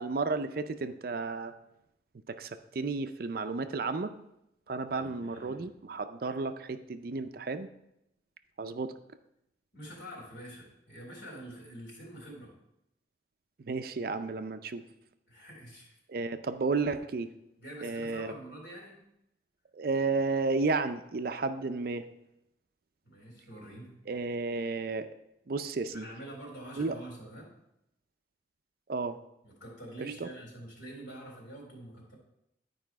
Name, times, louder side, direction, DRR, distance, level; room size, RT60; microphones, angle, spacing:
voice 1, 0.0-1.5 2.3-4.1 4.7-7.7 8.6-8.9 13.6-14.8 16.1-17.3 17.8-18.3 19.7-22.0 24.1-25.1 25.5-26.1 26.8-26.9 28.9-29.2 30.0-30.3, right 3 dB, 55° right, 9 dB, 0.5 m, -32 dB
voice 2, 4.9-5.6 9.7-12.5 15.3-16.0 17.6-19.0 23.0-23.9 25.9-27.5 29.4-32.2, right 1 dB, 85° left, -2 dB, 3.7 m, -46 dB
11.0 x 4.9 x 4.6 m, 0.82 s
head